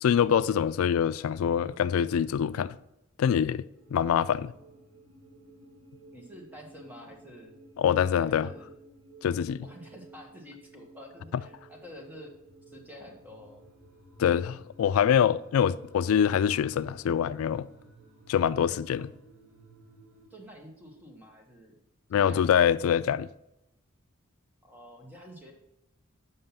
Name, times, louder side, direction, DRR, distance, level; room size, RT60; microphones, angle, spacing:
voice 1, 0.0-2.8 3.2-3.6 3.9-4.5 7.8-8.5 9.2-9.6 14.2-17.7 18.3-19.1 22.1-23.3, left 8 dB, 80° left, 0.3 m, -25 dB
sound 1, 3.7-20.3, right 2 dB, 80° right, 2.2 m, -54 dB
voice 2, 6.1-7.5 8.3-8.7 9.6-12.3 12.7-13.7 19.0-19.1 20.3-21.7 22.1-22.7 24.6-25.5, equal, 10° right, 1.5 m, -48 dB
7.7 x 5.5 x 5.7 m
head